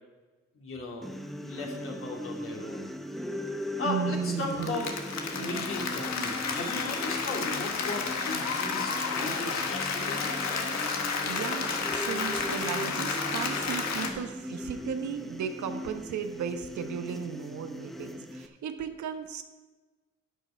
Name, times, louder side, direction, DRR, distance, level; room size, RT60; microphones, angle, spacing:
voice 1, 0.5-2.9 3.8-4.9 5.3-10.3, left 2 dB, 45° left, -1 dB, 2.9 m, -36 dB
sound 1, 1.0-18.5, equal, ahead, 0.9 m, -39 dB
voice 2, 3.8-4.8 11.2-19.4, right 7 dB, 70° right, 7 dB, 1.1 m, -35 dB
Applause, 4.4-14.1, left 5 dB, 60° left, 1.6 m, -31 dB
11.5 x 9.0 x 4.5 m, 1.2 s
cardioid pair, 90°, 30 cm